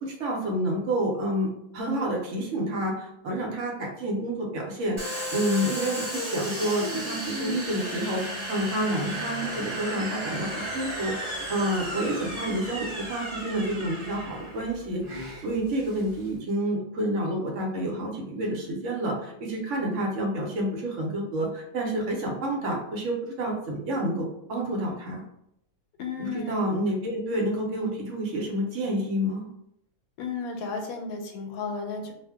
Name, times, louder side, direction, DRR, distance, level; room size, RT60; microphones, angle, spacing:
voice 1, 0.0-25.2 26.2-29.4, right 1 dB, 65° right, -1 dB, 0.9 m, -29 dB
Domestic sounds home sounds, 5.0-16.3, equal, 30° right, 0.6 m, -34 dB
voice 2, 26.0-26.6 30.2-32.1, left 4 dB, 85° left, 3 dB, 1.0 m, -33 dB
2.4 x 2.1 x 3.4 m, 0.78 s
omnidirectional pair, 1.5 m